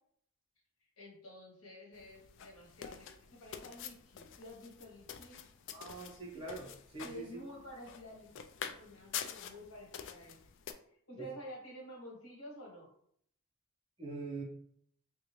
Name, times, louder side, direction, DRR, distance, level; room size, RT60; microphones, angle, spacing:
voice 1, 1.0-5.4 7.0-10.3 11.1-12.9, equal, 85° left, -2 dB, 1.3 m, -50 dB
sound 1, 1.9-10.7, left 8 dB, 55° left, 0.3 m, -47 dB
voice 2, 5.7-7.4 11.2-11.3 14.0-14.4, right 3 dB, 25° right, -6 dB, 1.2 m, -43 dB
3.5 x 2.7 x 3.1 m, 0.67 s
head